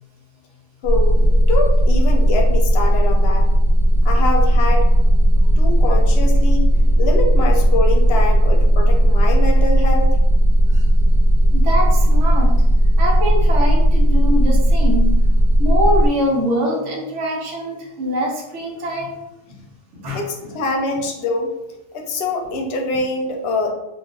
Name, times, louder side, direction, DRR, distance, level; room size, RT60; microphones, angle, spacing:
voice 1, 0.8-3.5 4.0-4.9 5.6-6.7 7.0-10.2 20.1-21.5 21.9-23.7, left 2 dB, 65° left, 2 dB, 0.7 m, -24 dB
sound 1, 0.8-16.1, equal, 65° right, 0.9 m, -15 dB
voice 2, 10.7-12.6 13.0-15.1 15.6-19.2 19.9-20.2, equal, 90° right, -1 dB, 1.1 m, -24 dB
2.4 x 2.4 x 3.5 m, 0.90 s
omnidirectional pair, 1.2 m